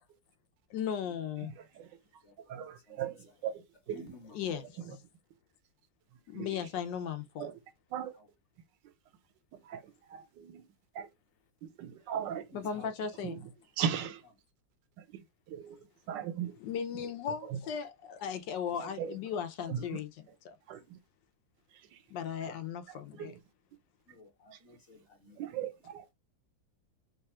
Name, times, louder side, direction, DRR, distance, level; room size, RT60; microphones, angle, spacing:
voice 1, 0.7-1.5 4.3-4.7 6.3-7.5 12.5-13.4 16.6-20.1 20.4-20.5 22.1-23.3, left 8 dB, 80° left, 1.3 m, -36 dB
voice 2, 1.4-1.9 2.5-4.1 4.5-5.0 6.3-6.7 7.4-7.6 7.9-8.1 9.6-10.6 10.9-11.1 11.6-12.8 13.1-14.2 15.0-16.8 17.3-17.6 18.7-19.9 20.7-21.0 21.9-22.0 22.4-22.5 22.9-23.4 25.4-26.0, right 9 dB, 80° right, 1.3 m, -39 dB
voice 3, 2.2-3.0 3.9-4.4 4.8-5.0 6.6-6.7 8.2-8.3 12.5-12.9 22.4-22.5 24.1-25.4, left 3 dB, 45° left, 1.1 m, -54 dB
3.2 x 2.3 x 4.2 m
omnidirectional pair, 2.0 m